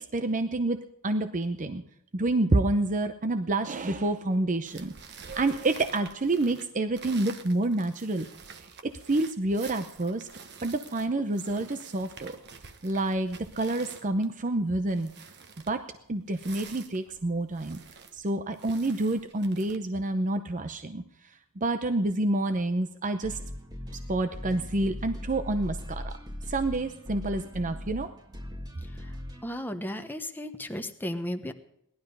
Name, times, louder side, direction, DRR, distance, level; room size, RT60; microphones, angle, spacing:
voice 1, 0.1-1.8 2.1-8.3 8.8-10.3 10.6-12.4 12.8-15.1 15.7-15.8 16.1-17.8 18.1-21.0 21.6-23.4 24.1-26.1 26.5-28.1, right 2 dB, 35° right, 9 dB, 0.7 m, -28 dB
sound 1, 4.6-19.8, right 5 dB, 50° right, 1.3 m, -48 dB
sound 2, 23.2-29.4, left 1 dB, 20° right, 1.5 m, -39 dB
voice 2, 29.4-31.5, left 1 dB, 10° left, 7 dB, 1.1 m, -34 dB
18.0 x 12.0 x 5.4 m, 0.76 s
head